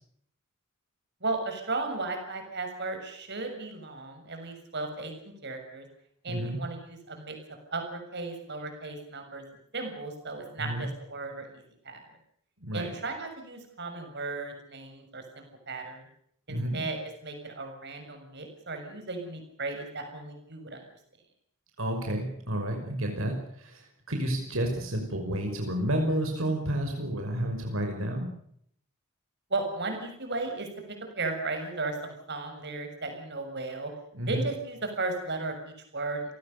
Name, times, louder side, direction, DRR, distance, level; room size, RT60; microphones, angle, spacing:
voice 1, 1.2-5.1 5.4-5.9 6.2-7.4 7.7-9.4 9.7-12.0 12.7-16.0 16.5-20.8 29.5-33.9 34.3-36.3, right 3 dB, 55° right, 5 dB, 6.7 m, -35 dB
voice 2, 6.3-6.6 10.6-10.8 12.6-12.9 16.5-16.8 21.8-28.3 34.1-34.4, right 1 dB, 70° right, 3 dB, 5.7 m, -30 dB
29.5 x 19.0 x 6.8 m, 0.68 s
head